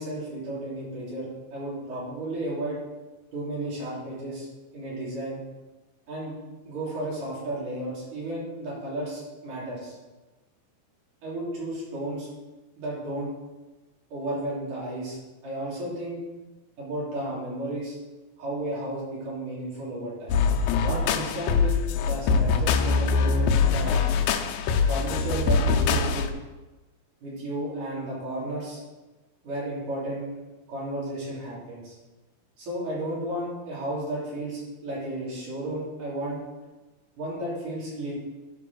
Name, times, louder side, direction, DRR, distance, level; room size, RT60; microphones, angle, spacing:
voice 1, 0.0-2.8 3.3-4.5 4.7-5.4 6.1-6.4 6.7-10.0 11.2-12.3 12.8-13.3 14.1-16.2 16.8-18.0 18.4-20.4 20.8-24.0 24.8-26.2 27.2-28.8 29.4-30.3 30.7-31.9 32.6-36.4 37.2-38.1, right 1 dB, 65° right, -7 dB, 5.2 m, -33 dB
sound 1, 20.3-26.3, left 5 dB, 90° left, 2.5 m, -23 dB
12.0 x 5.4 x 6.2 m, 1.2 s
omnidirectional pair, 4.0 m